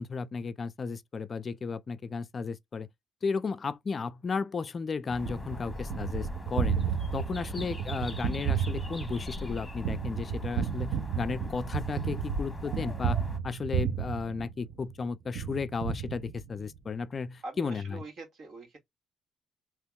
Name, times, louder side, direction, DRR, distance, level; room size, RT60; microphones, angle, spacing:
voice 1, 0.0-2.9 3.2-6.8 7.1-13.2 13.4-18.0, left 5 dB, 40° left, 0.3 m, -34 dB
sound 1, 5.1-13.4, left 1 dB, 10° left, 1.3 m, -40 dB
Gunshot gunfire, 5.2-14.9 15.3-16.8, right 7 dB, 85° right, 0.6 m, -33 dB
voice 2, 17.4-18.8, right 2 dB, 60° right, 1.9 m, -44 dB
3.4 x 2.9 x 2.2 m
cardioid pair, 90°, 0 cm